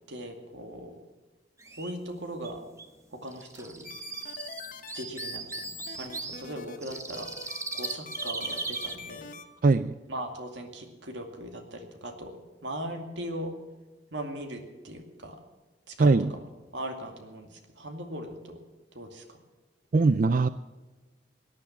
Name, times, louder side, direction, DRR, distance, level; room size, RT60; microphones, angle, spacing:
voice 1, 0.1-1.0 1.7-2.6 3.1-3.9 5.0-9.3 10.1-13.5 14.1-15.4 15.9-18.6 18.9-19.4, right 1 dB, 90° right, 5 dB, 2.5 m, -39 dB
sound 1, 1.6-1.9 2.4-2.5 2.8-2.9 3.3-6.4 6.8-8.9, right 3 dB, 15° right, 1.0 m, -37 dB
sound 2, 3.8-9.4, left 5 dB, 50° left, 1.2 m, -44 dB
voice 2, 9.6-9.9 16.0-16.3 19.9-20.5, right 3 dB, 45° right, 14 dB, 0.4 m, -21 dB
18.0 x 10.5 x 6.0 m, 1.2 s
head